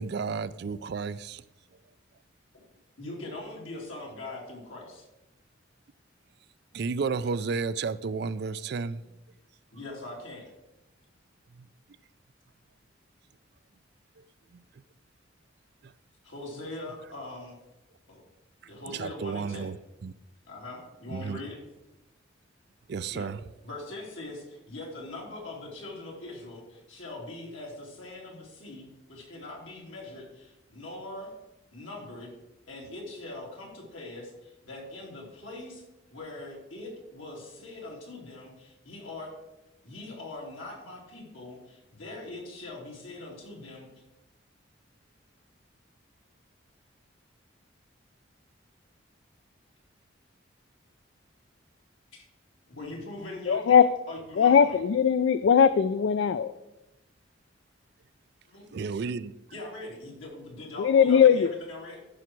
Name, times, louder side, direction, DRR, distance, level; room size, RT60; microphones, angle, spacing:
voice 1, 0.0-1.4 6.7-9.0 11.6-11.7 14.5-14.6 15.8-15.9 18.6-20.1 21.1-21.4 22.9-23.4 58.7-59.3, right 5 dB, 55° right, 0.4 m, -32 dB
voice 2, 3.0-5.1 9.7-10.5 16.2-17.5 18.1-18.2 18.7-19.7 20.4-21.6 23.1-23.3 23.6-31.3 31.7-32.3 32.7-35.8 36.1-39.3 39.8-43.9 52.1-52.3 52.7-54.8 58.5-58.6 59.5-62.0, left 2 dB, 85° left, 3.2 m, -42 dB
voice 3, 53.5-53.8 54.4-56.5 60.8-61.5, left 7 dB, 70° left, 0.3 m, -20 dB
14.0 x 6.1 x 4.6 m
head